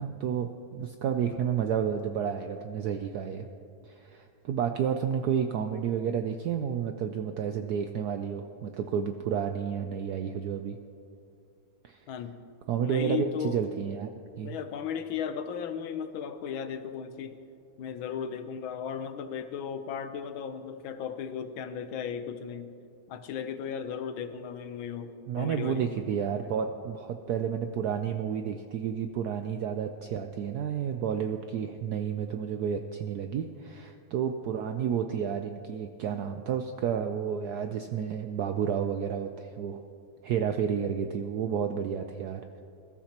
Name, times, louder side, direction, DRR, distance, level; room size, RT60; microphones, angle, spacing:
voice 1, 0.0-3.5 3.8-10.8 11.8-12.0 12.7-14.1 14.4-14.5 25.3-39.8 40.2-42.6, right 8 dB, 75° right, 6 dB, 0.9 m, -31 dB
voice 2, 12.1-12.4 12.8-13.6 14.4-17.4 17.8-22.7 23.1-25.8, left 7 dB, 75° left, 9 dB, 1.5 m, -36 dB
21.0 x 13.0 x 2.9 m, 2.6 s
omnidirectional pair, 2.2 m